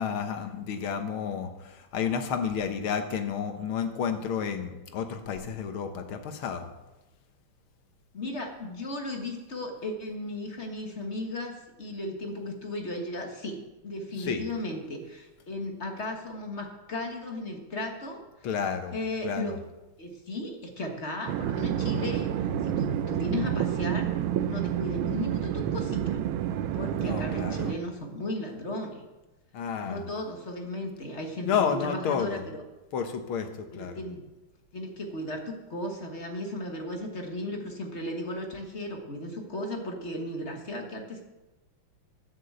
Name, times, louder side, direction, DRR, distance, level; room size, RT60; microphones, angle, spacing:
voice 1, 0.0-6.7 14.2-14.5 18.4-18.9 19.2-19.6 27.0-27.7 29.5-30.0 31.4-32.4 32.9-34.0, left 7 dB, 80° left, 7 dB, 1.9 m, -31 dB
voice 2, 8.1-18.2 18.9-19.5 20.0-24.1 24.4-26.2 26.7-29.0 29.8-32.6 33.7-34.2 34.7-41.2, left 1 dB, 35° left, 3 dB, 1.6 m, -35 dB
sound 1, 21.3-27.7, right 10 dB, 80° right, 1.5 m, -29 dB
11.0 x 6.9 x 7.8 m, 1.1 s
omnidirectional pair, 2.3 m